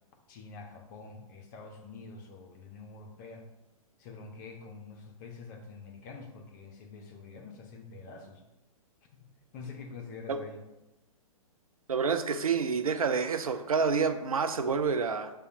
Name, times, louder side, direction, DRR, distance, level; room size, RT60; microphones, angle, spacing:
voice 1, 0.3-3.5 4.0-8.4 9.1-9.2 9.5-10.7, left 4 dB, 30° left, 3 dB, 0.6 m, -46 dB
voice 2, 11.9-15.3, right 5 dB, 75° right, 8 dB, 0.4 m, -28 dB
6.6 x 2.2 x 2.6 m, 0.97 s
figure-of-eight pair, 115°, 18 cm